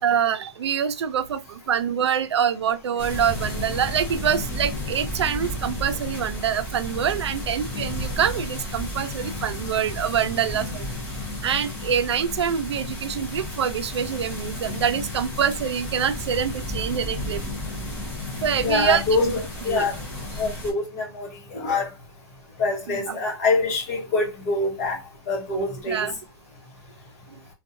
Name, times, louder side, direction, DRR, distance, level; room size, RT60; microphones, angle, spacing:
voice 1, 0.0-10.9 11.4-17.4 18.4-19.3 19.7-19.9 22.9-23.2 25.9-26.2 27.3-27.4, right 8 dB, 90° right, 0.4 m, -25 dB
sound 1, 3.0-20.7, left 1 dB, 10° left, 0.5 m, -33 dB
voice 2, 18.6-19.9 20.4-21.9 22.6-25.0 25.3-26.1, left 3 dB, 35° left, 1.0 m, -25 dB
2.5 x 2.2 x 2.6 m
hypercardioid pair, 170°, 14 cm